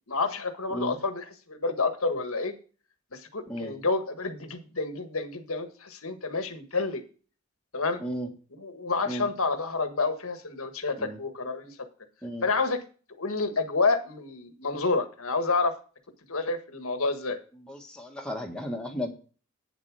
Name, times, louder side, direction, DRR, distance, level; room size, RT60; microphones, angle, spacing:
voice 1, 0.1-2.5 3.1-7.0 7.7-8.0 8.6-11.7 12.4-12.8 13.2-15.7 16.3-17.4, left 3 dB, 70° left, 8 dB, 1.5 m, -29 dB
voice 2, 17.6-19.1, equal, 5° left, 0 dB, 1.6 m, -34 dB
9.4 x 7.3 x 4.8 m, 0.37 s
head